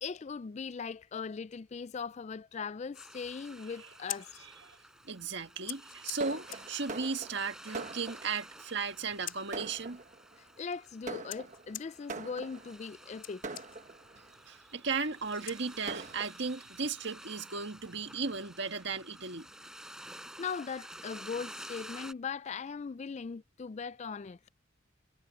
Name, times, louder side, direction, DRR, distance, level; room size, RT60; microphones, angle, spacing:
voice 1, 0.0-4.5 10.6-13.4 20.4-24.4, left 5 dB, 35° left, 0.3 m, -39 dB
sound 1, 2.9-22.1, right 1 dB, 5° right, 6.3 m, -51 dB
Scissors, 3.8-16.2, left 14 dB, 75° left, 2.4 m, -49 dB
voice 2, 5.1-10.0 14.5-19.4, right 4 dB, 60° right, 1.7 m, -36 dB
Fireworks, 6.2-8.5 9.1-9.2 9.5-10.4 11.1-12.8 13.4-14.3 15.0-15.1 15.5-15.6 15.9-16.3, right 3 dB, 40° right, 1.1 m, -43 dB
head